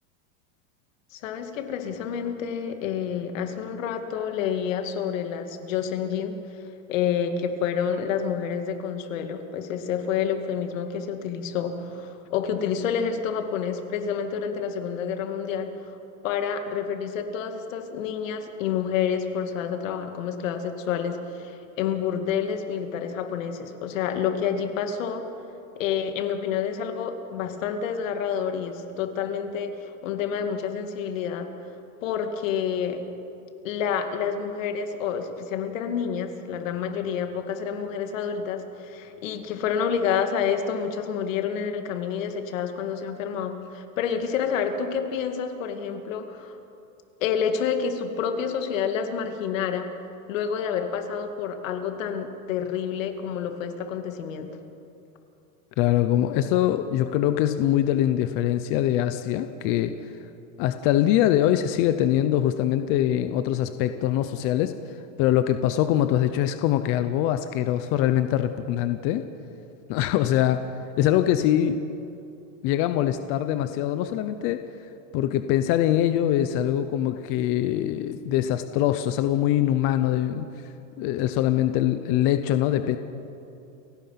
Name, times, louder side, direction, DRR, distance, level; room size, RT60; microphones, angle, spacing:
voice 1, 1.1-6.4 6.9-16.0 16.2-25.2 25.8-31.5 32.0-33.0 33.6-46.6 47.2-49.9 50.3-54.6, left 7 dB, 70° left, 6 dB, 2.4 m, -28 dB
voice 2, 55.8-59.9 60.6-64.7 65.2-69.2 69.9-70.7 71.0-71.8 72.6-74.6 75.1-80.5 81.0-83.0, left 12 dB, 35° left, 10 dB, 0.7 m, -23 dB
29.5 x 16.5 x 5.8 m, 2.7 s
supercardioid pair, 165°, 40 cm